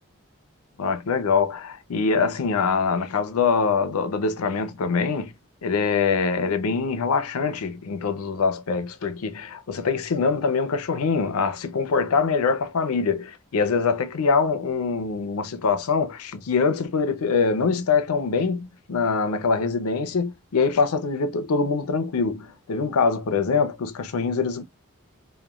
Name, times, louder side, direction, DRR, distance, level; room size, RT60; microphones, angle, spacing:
voice 1, 0.8-5.3 5.6-24.6, left 5 dB, 85° left, 0.5 m, -24 dB
3.0 x 2.2 x 2.3 m
head